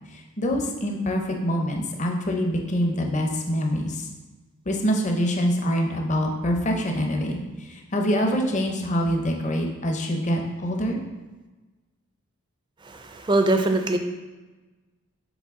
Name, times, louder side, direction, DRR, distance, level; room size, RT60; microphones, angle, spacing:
voice 1, 0.1-4.1 4.7-11.0, equal, 35° left, 2 dB, 0.7 m, -25 dB
voice 2, 12.8-14.0, right 2 dB, 20° right, 6 dB, 0.4 m, -22 dB
7.1 x 3.8 x 3.6 m, 1.2 s
head